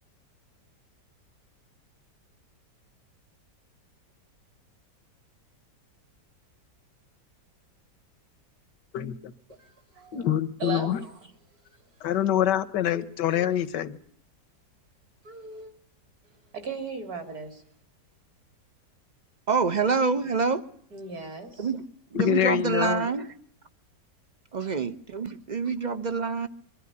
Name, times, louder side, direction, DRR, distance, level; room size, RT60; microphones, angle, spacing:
voice 1, 8.9-9.3 10.1-11.0 12.0-14.0 22.1-23.1, left 11 dB, 80° left, 14 dB, 1.7 m, -25 dB
voice 2, 9.5-10.3 10.6-11.3 12.9-13.0 13.3-13.5 15.2-15.7 16.5-17.6 20.9-21.7 24.6-24.7 25.7-25.8, right 5 dB, 60° right, 7 dB, 3.7 m, -38 dB
voice 3, 19.5-20.6 21.6-21.8 22.1-23.3 24.5-26.5, right 4 dB, 35° right, 12 dB, 0.8 m, -26 dB
23.5 x 12.5 x 9.7 m, 0.66 s
omnidirectional pair, 1.9 m